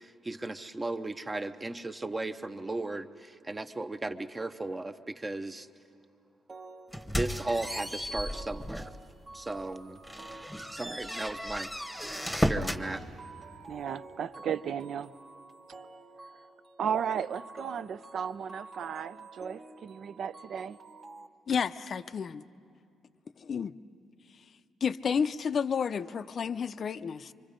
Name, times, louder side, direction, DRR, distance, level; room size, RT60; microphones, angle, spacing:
voice 1, 0.0-5.7 7.1-8.9 9.3-10.0 10.7-11.7 12.4-13.0, right 2 dB, 20° right, 10 dB, 0.7 m, -36 dB
sound 1, 6.5-21.3, right 3 dB, 35° right, 1.0 m, -50 dB
sound 2, 6.9-9.0 9.5-9.6 10.0-12.9, equal, ahead, 1.1 m, -34 dB
voice 2, 13.7-15.1 16.8-20.8, right 8 dB, 65° right, 14 dB, 0.5 m, -34 dB
voice 3, 21.5-22.4 23.4-23.7 24.8-27.3, left 6 dB, 50° left, 13 dB, 0.5 m, -31 dB
25.5 x 24.5 x 5.2 m, 2.4 s
cardioid pair, 90°, 0 cm